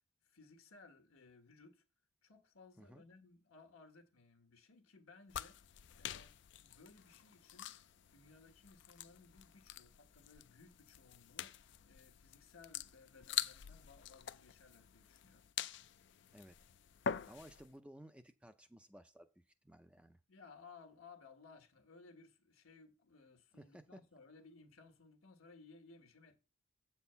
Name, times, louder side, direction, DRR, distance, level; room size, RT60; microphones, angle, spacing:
voice 1, 0.2-1.8 2.2-5.6 6.0-6.3 6.6-7.8 8.1-11.6 11.8-15.5 20.3-26.4, left 4 dB, 85° left, 1.5 m, -61 dB
sound 1, 5.3-17.7, left 9 dB, 55° left, 0.4 m, -46 dB
voice 2, 17.3-19.3 19.6-20.2 23.6-24.0, right 1 dB, 5° right, 0.4 m, -57 dB
8.0 x 4.3 x 6.8 m
head